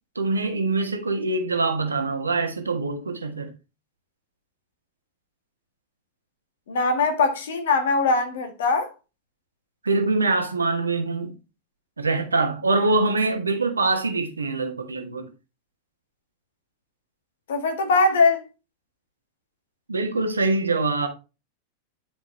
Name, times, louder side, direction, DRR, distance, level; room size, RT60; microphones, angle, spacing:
voice 1, 0.1-3.5 9.8-11.3 12.0-15.3 19.9-21.1, right 3 dB, 75° right, 1.3 m, -24 dB
voice 2, 6.7-8.9 17.5-18.4, left 3 dB, 60° left, 1.7 m, -21 dB
9.7 x 5.0 x 3.2 m
figure-of-eight pair, 90°, 0 cm